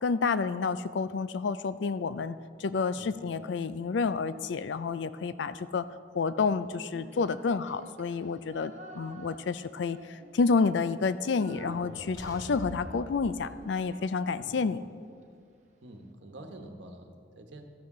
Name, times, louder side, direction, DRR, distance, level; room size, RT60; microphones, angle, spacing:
voice 1, 0.0-2.3 2.6-5.8 6.1-14.8, left 4 dB, 70° left, 14 dB, 0.4 m, -29 dB
Female singing, 6.8-10.7 11.0-15.3, right 1 dB, 40° right, 1.0 m, -52 dB
sound 1, 11.3-14.3, equal, 20° right, 1.4 m, -45 dB
sound 2, 12.1-12.9 14.8-14.9 15.2-15.3, left 1 dB, 20° left, 0.9 m, -50 dB
voice 2, 15.8-17.7, right 1 dB, 70° right, 5 dB, 1.1 m, -47 dB
13.5 x 11.5 x 3.8 m, 2.3 s
head